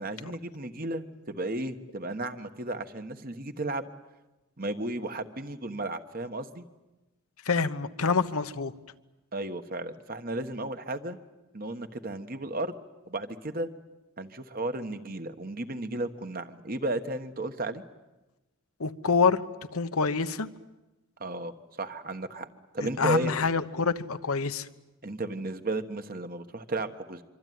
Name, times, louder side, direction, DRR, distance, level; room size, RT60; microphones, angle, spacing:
voice 1, 0.0-3.9 4.6-6.6 9.3-11.2 11.5-12.7 13.1-13.7 14.2-17.8 21.2-21.5 21.8-22.5 22.7-23.3 25.0-27.2, right 2 dB, 40° right, 8 dB, 1.4 m, -34 dB
voice 2, 7.5-8.7 18.8-19.4 19.7-20.5 22.8-24.7, left 5 dB, 85° left, 10 dB, 1.1 m, -26 dB
25.5 x 25.0 x 9.4 m, 1.0 s
head